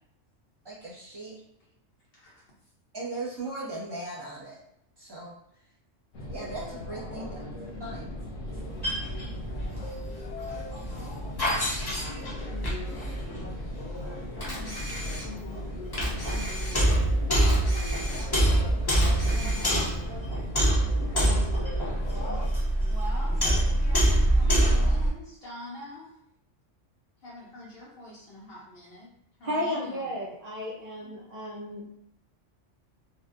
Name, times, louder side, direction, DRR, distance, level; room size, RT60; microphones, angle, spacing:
voice 1, 0.6-1.3 2.9-4.6 5.0-5.3 6.3-7.4 7.8-8.1, right 2 dB, 25° right, -6 dB, 0.8 m, -38 dB
sound 1, 6.1-22.5, left 1 dB, 85° left, 0.9 m, -39 dB
sound 2, 8.5-25.1, right 1 dB, 35° left, 0.3 m, -26 dB
Camera, 14.4-15.5 15.9-17.1 17.4-18.5 18.9-20.0, equal, 20° left, 1.0 m, -39 dB
voice 2, 22.9-26.2 27.2-29.1 29.4-30.1, equal, 60° left, -5 dB, 0.7 m, -44 dB
voice 3, 29.4-31.9, left 1 dB, 55° right, -6 dB, 0.4 m, -33 dB
2.6 x 2.1 x 2.3 m, 0.72 s
omnidirectional pair, 1.3 m